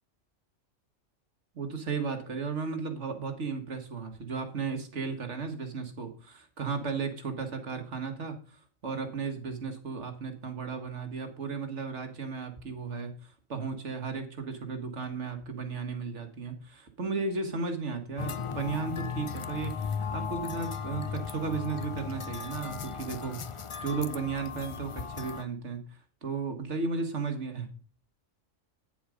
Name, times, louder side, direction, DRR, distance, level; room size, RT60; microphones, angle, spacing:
voice 1, 1.6-27.7, right 4 dB, 70° right, 6 dB, 1.9 m, -35 dB
sound 1, 18.2-25.4, left 6 dB, 50° left, 0.4 m, -36 dB
9.7 x 7.2 x 5.0 m, 0.41 s
omnidirectional pair, 1.3 m